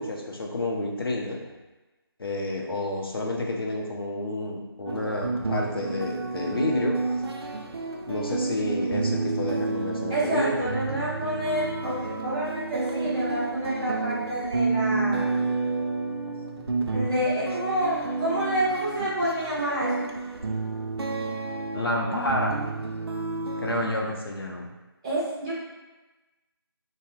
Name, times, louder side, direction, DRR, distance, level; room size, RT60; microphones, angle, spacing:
voice 1, 0.0-1.4 2.2-7.0 8.1-10.7 21.7-22.6 23.6-24.7, left 1 dB, 65° left, -1 dB, 0.6 m, -29 dB
sound 1, 4.9-23.9, right 3 dB, 75° right, 0.4 m, -30 dB
voice 2, 10.1-15.3 16.9-19.9 25.0-25.5, right 1 dB, 10° right, -10 dB, 0.6 m, -28 dB
2.6 x 2.0 x 3.6 m, 1.1 s
figure-of-eight pair, 160°, 13 cm